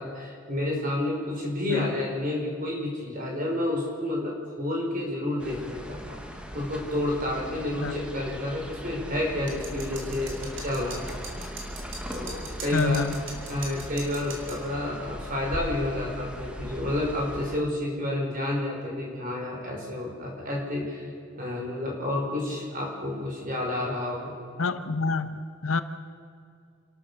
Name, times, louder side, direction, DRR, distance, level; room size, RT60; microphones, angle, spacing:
voice 1, 0.0-6.2 6.5-11.1 12.1-13.1 13.5-21.1 21.4-24.3, left 1 dB, 40° right, -1 dB, 5.3 m, -30 dB
sound 1, 5.4-17.6, equal, 5° right, 1.3 m, -39 dB
sound 2, 9.5-14.6, right 3 dB, 60° right, 3.7 m, -41 dB
voice 2, 12.7-13.1 18.0-18.1 24.6-25.8, left 4 dB, 80° left, 11 dB, 1.0 m, -27 dB
29.0 x 12.5 x 7.0 m, 2.3 s
head